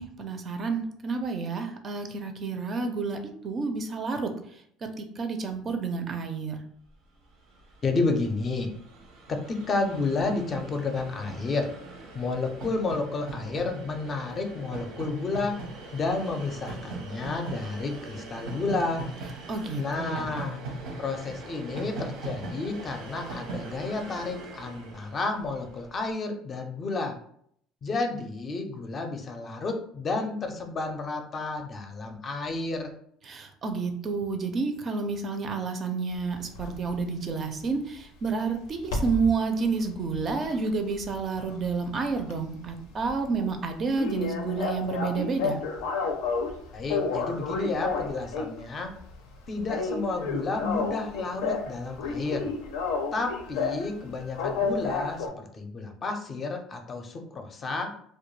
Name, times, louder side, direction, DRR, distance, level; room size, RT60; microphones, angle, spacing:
voice 1, 0.0-3.2 3.4-4.3 5.0-6.6 19.5-20.4 33.3-45.6, right 4 dB, 40° right, 6 dB, 0.4 m, -30 dB
Train, 7.2-7.3 7.5-25.9, right 2 dB, 85° right, 0.8 m, -40 dB
voice 2, 7.8-8.7 9.3-11.7 12.1-15.6 15.9-19.1 19.8-20.6 21.0-27.2 27.8-32.9 46.7-48.9 49.5-52.5 53.1-55.3 55.5-57.9, left 3 dB, 35° left, 4 dB, 0.5 m, -31 dB
sound 1, 36.5-36.7 38.8-39.3 39.7-41.9 42.2-42.3 42.7-42.8 43.1-43.2 43.4-43.5 44.0-46.5 46.9-48.6 49.0-49.3 49.6-51.7 52.0-53.8 54.3-55.3, left 4 dB, 90° left, 0.4 m, -30 dB
2.2 x 2.2 x 3.0 m, 0.65 s
supercardioid pair, 105°, 0 cm